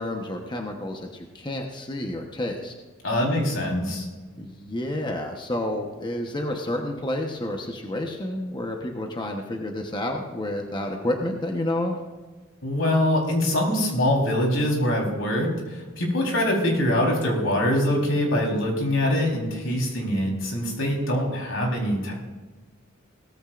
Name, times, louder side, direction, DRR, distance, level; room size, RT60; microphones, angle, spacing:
voice 1, 0.0-2.7 4.4-12.0, left 1 dB, 25° left, 2 dB, 1.1 m, -30 dB
voice 2, 3.0-4.1 12.6-22.1, left 1 dB, 85° left, -1 dB, 4.1 m, -24 dB
17.5 x 14.5 x 2.6 m, 1.3 s
head